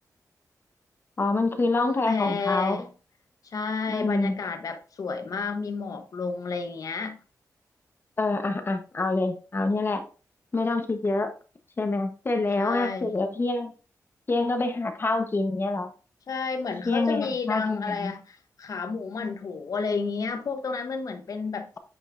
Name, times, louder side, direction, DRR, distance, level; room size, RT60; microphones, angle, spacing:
voice 1, 1.2-2.8 3.9-4.3 8.2-10.0 10.5-11.3 11.8-13.7 14.3-15.9 16.9-18.1, left 3 dB, 35° left, 1.1 m, -26 dB
voice 2, 1.7-2.9 3.4-7.2 12.6-13.1 16.3-21.8, left 5 dB, 65° left, 1.0 m, -31 dB
8.6 x 5.2 x 2.6 m
wide cardioid pair, 125°, 6 cm